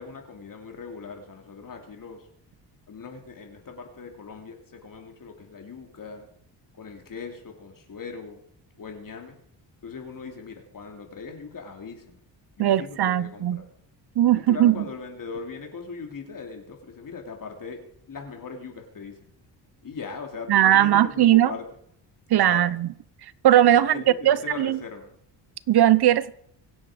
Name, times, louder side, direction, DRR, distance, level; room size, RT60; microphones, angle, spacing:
voice 1, 0.0-2.3 2.9-6.3 6.7-8.4 8.8-9.4 9.8-12.2 12.6-13.7 14.3-17.8 18.1-19.3 19.8-21.7 22.3-22.6 23.7-25.1, left 5 dB, 45° left, 3.0 m, -39 dB
voice 2, 12.6-13.6 14.2-14.8 20.5-21.5 22.3-22.9 23.4-23.9 24.2-24.8 25.7-26.4, right 12 dB, 55° right, 0.8 m, -19 dB
25.0 x 8.6 x 5.1 m
cardioid pair, 95°, 45 cm